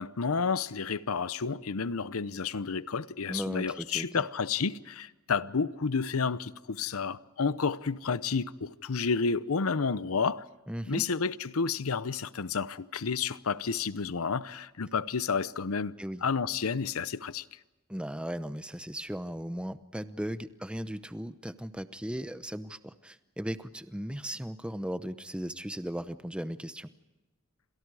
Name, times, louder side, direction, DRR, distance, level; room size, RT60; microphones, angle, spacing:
voice 1, 0.0-10.4 10.8-15.9 16.2-17.5, left 5 dB, 80° left, 0.7 m, -30 dB
voice 2, 3.3-4.2 10.7-11.1 16.0-16.2 17.9-26.9, equal, 5° right, 0.8 m, -37 dB
29.0 x 26.5 x 4.8 m
head